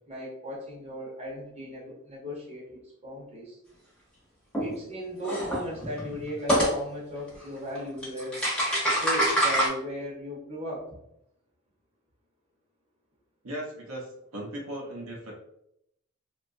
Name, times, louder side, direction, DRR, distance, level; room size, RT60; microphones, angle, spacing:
voice 1, 0.1-3.6 4.6-8.4 8.9-11.0, equal, 30° right, -5 dB, 0.7 m, -37 dB
sound 1, 4.5-4.7 5.2-6.7 7.8-7.9 8.0-9.7, right 1 dB, 5° left, 0.6 m, -25 dB
voice 2, 13.4-15.3, right 1 dB, 75° right, -1 dB, 0.7 m, -37 dB
2.7 x 2.2 x 2.5 m, 0.76 s
head